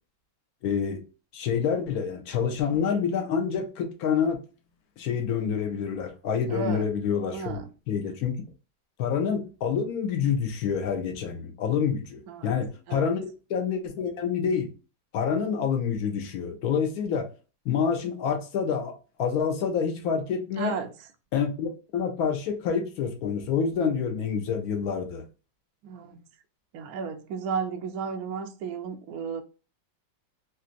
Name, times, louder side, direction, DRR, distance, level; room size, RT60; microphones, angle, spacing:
voice 1, 0.6-1.0 1.3-4.4 5.0-7.6 7.9-8.4 9.0-14.7 15.1-17.3 17.6-20.7 21.3-25.2, left 7 dB, 65° left, 1.0 m, -27 dB
voice 2, 6.5-6.9 7.3-7.7 12.3-12.6 12.9-13.1 20.6-20.9 25.8-26.3 26.7-29.4, right 6 dB, 75° right, 0.8 m, -33 dB
3.3 x 2.9 x 2.5 m
omnidirectional pair, 2.1 m